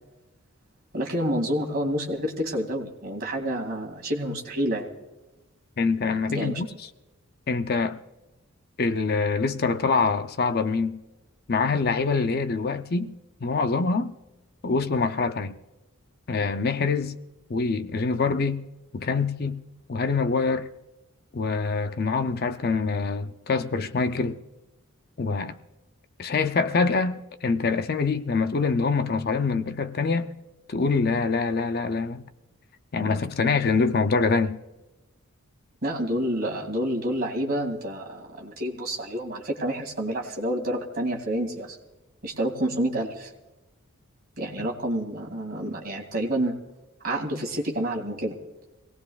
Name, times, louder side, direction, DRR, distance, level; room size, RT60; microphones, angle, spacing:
voice 1, 0.9-4.9 6.3-6.6 35.8-41.8 42.2-43.3 44.4-46.5 47.0-48.4, right 1 dB, 45° right, 2.4 m, -28 dB
voice 2, 5.8-6.7 7.5-8.0 8.8-11.0 11.5-13.1 13.4-14.1 14.6-15.5 16.3-17.1 17.5-18.6 18.9-19.6 19.9-20.7 21.3-24.4 25.2-25.6 26.2-30.3 30.7-32.2 32.9-34.6, left 4 dB, 45° left, 0.5 m, -25 dB
24.5 x 18.5 x 2.4 m
head